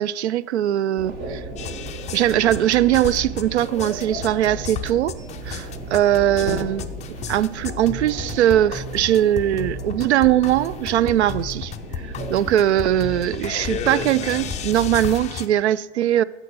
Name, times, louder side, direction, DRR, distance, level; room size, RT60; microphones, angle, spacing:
voice 1, 0.0-1.4 2.1-5.1 5.5-7.0 7.3-11.7 12.3-16.2, right 12 dB, 70° right, 0.5 m, -20 dB
sound 1, 1.0-15.0, right 2 dB, 35° right, 2.3 m, -35 dB
sound 2, 1.6-15.5, left 8 dB, 20° left, 0.5 m, -34 dB
14.0 x 5.0 x 6.5 m
figure-of-eight pair, 90°, 35 cm